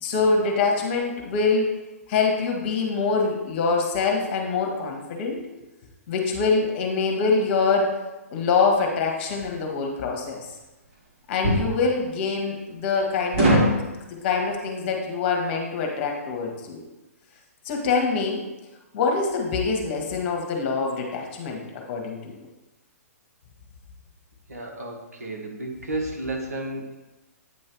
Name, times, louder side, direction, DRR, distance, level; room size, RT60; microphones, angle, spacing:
voice 1, 0.0-1.7 2.1-5.4 6.1-8.0 8.3-10.5 11.3-13.7 14.1-16.8 17.6-18.4 18.9-22.5, left 4 dB, 40° left, 1 dB, 1.5 m, -24 dB
sound 1, 9.3-9.5 11.4-11.7 13.3-13.8, right 1 dB, 45° right, 2.3 m, -20 dB
voice 2, 24.5-27.0, right 2 dB, 80° right, 1 dB, 1.4 m, -32 dB
8.8 x 3.2 x 4.6 m, 1.1 s
figure-of-eight pair, 125°, 8 cm